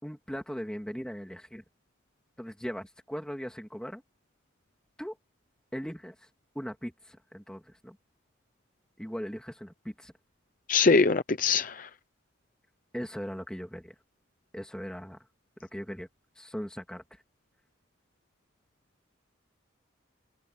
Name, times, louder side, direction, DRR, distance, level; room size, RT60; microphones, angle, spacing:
voice 1, 0.0-1.6 2.4-4.0 5.0-5.2 5.7-6.1 6.5-8.0 9.0-10.1 12.9-13.9 14.5-15.2 15.6-16.1 16.4-17.2, equal, 5° left, 3.0 m, -39 dB
voice 2, 10.7-11.9, left 4 dB, 45° left, 0.7 m, -23 dB
head